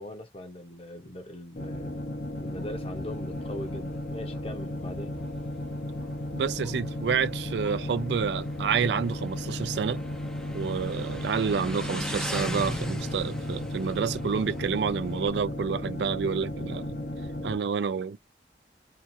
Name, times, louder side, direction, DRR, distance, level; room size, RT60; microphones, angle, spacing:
voice 1, 0.0-2.0 2.3-5.2, left 1 dB, 35° left, 0.7 m, -41 dB
sound 1, 1.6-17.6, left 1 dB, 65° left, 0.8 m, -35 dB
Motorcycle, 2.4-15.3, equal, 5° left, 0.4 m, -40 dB
voice 2, 6.3-10.0 10.5-17.0 17.4-18.2, right 6 dB, 75° right, 0.4 m, -29 dB
2.8 x 2.4 x 2.6 m
head